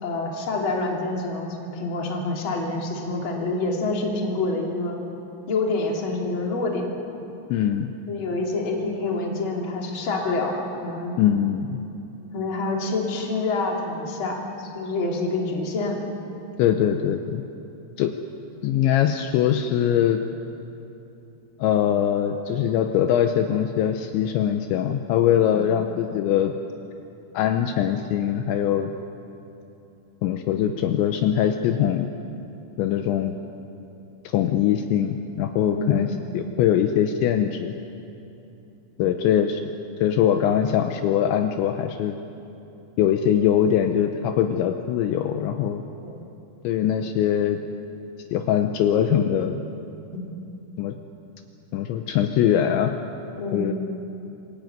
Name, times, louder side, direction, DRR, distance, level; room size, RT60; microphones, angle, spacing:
voice 1, 0.0-5.0 5.5-7.0 8.1-11.1 12.3-16.0 25.5-25.7 35.7-36.1 39.0-39.1 46.0-46.3 50.1-50.3 53.4-53.7, left 2 dB, 30° left, -1 dB, 2.9 m, -27 dB
voice 2, 7.5-7.9 11.2-11.8 16.6-17.4 18.0-18.1 18.6-20.2 21.6-26.5 27.3-28.9 30.2-32.1 32.8-33.3 34.2-37.7 39.0-39.7 40.0-42.2 43.0-45.8 46.6-47.6 48.3-49.6 50.8-50.9 51.7-52.9 53.5-53.7, left 10 dB, 80° left, 6 dB, 3.0 m, -22 dB
27.0 x 16.0 x 9.3 m, 2.8 s
omnidirectional pair, 5.6 m